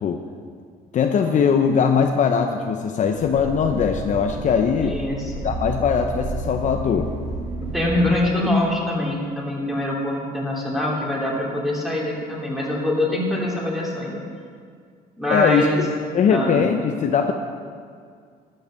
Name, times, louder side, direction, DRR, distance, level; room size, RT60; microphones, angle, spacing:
voice 1, 0.9-5.0 5.4-7.1 15.3-17.3, left 6 dB, 45° left, 5 dB, 0.7 m, -20 dB
sound 1, 3.1-8.2, right 2 dB, 40° right, 2.6 m, -31 dB
voice 2, 4.8-5.5 7.6-14.2 15.2-15.8 16.3-16.6, left 1 dB, ahead, -3 dB, 2.8 m, -24 dB
11.5 x 7.8 x 6.4 m, 2.1 s
cardioid pair, 110°, 17 cm